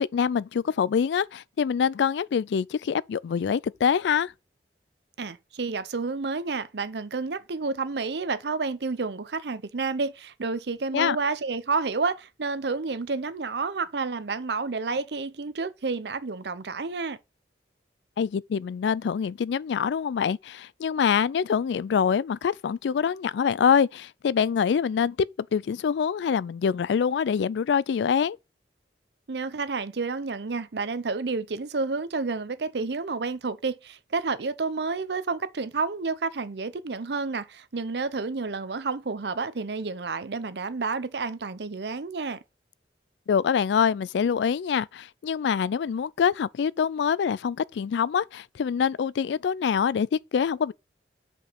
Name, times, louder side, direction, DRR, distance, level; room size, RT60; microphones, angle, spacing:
voice 1, 0.0-4.3 10.9-11.2 18.2-25.2 25.5-28.4 43.3-50.7, left 7 dB, 80° left, 0.3 m, -25 dB
voice 2, 5.2-17.2 29.3-42.4, right 4 dB, 70° right, 0.7 m, -30 dB
5.4 x 5.1 x 5.4 m
head